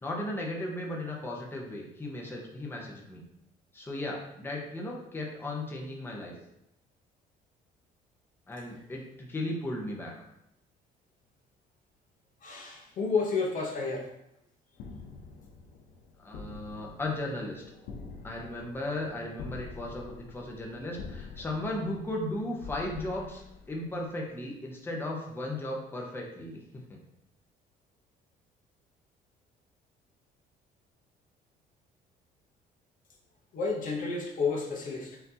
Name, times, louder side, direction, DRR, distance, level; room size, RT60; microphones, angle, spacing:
voice 1, 0.0-3.2 3.7-6.3 8.5-10.1 16.2-17.6 18.2-26.8, left 1 dB, 15° left, -2 dB, 0.8 m, -36 dB
voice 2, 12.4-14.1 33.5-35.2, left 4 dB, 50° left, 0 dB, 0.8 m, -31 dB
sound 1, 14.7-24.3, left 4 dB, 85° left, 0.7 m, -46 dB
5.7 x 2.7 x 2.7 m, 0.81 s
cardioid pair, 110°, 17 cm